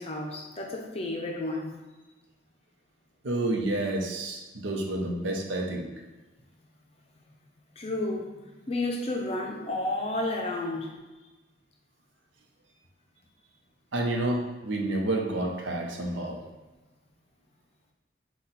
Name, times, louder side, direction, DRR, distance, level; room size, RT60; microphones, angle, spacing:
voice 1, 0.0-1.8 7.8-8.3 8.7-10.9, left 2 dB, 30° left, 1 dB, 0.5 m, -31 dB
voice 2, 3.2-5.9 13.9-16.4, right 1 dB, 75° right, 1 dB, 0.7 m, -29 dB
4.2 x 2.3 x 4.0 m, 1.2 s
head